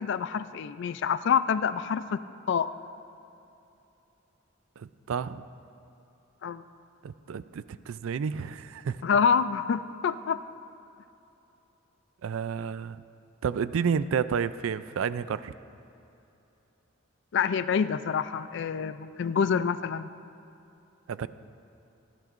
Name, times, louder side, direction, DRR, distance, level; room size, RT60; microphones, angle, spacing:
voice 1, 0.0-2.2 2.5-2.7 6.4-6.6 9.0-10.4 17.3-20.1, left 6 dB, 55° left, 14 dB, 0.3 m, -27 dB
voice 2, 4.8-5.4 7.0-9.0 12.2-13.0 13.4-15.5 21.1-21.3, right 6 dB, 70° right, 15 dB, 0.4 m, -30 dB
17.5 x 13.5 x 2.5 m, 2.9 s
head